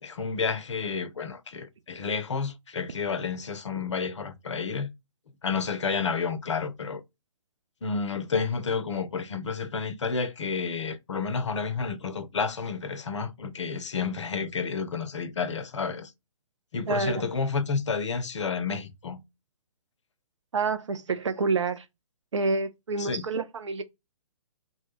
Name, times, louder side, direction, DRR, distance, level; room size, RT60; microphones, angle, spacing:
voice 1, 0.0-4.9 5.4-7.0 7.8-16.1 16.7-19.2 23.0-23.3, left 5 dB, 55° left, 0.5 m, -30 dB
voice 2, 16.9-17.3 20.5-21.8 22.3-23.8, right 4 dB, 55° right, 0.5 m, -28 dB
2.1 x 2.1 x 3.0 m
figure-of-eight pair, 130°, 18 cm